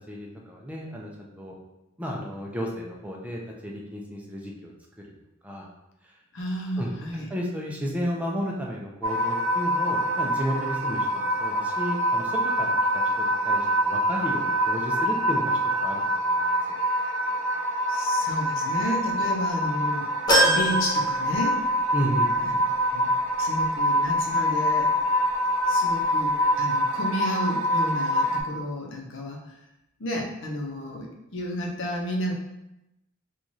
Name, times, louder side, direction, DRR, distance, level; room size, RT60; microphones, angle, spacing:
voice 1, 0.1-1.6 2.0-4.7 5.4-5.7 6.8-6.9 7.3-16.6 21.9-22.3, equal, 5° right, -2 dB, 0.4 m, -33 dB
voice 2, 6.3-7.3 17.9-20.1 20.4-21.6 22.4-22.6 22.9-23.1 23.4-24.9 25.7-29.6 30.0-32.3, equal, 65° left, 0 dB, 0.6 m, -32 dB
sound 1, 9.0-28.4, equal, 85° right, 0.7 m, -25 dB
sound 2, 20.3-21.9 22.3-22.4 23.7-23.8, right 1 dB, 20° left, 0.7 m, -24 dB
3.1 x 2.4 x 4.0 m, 0.91 s
head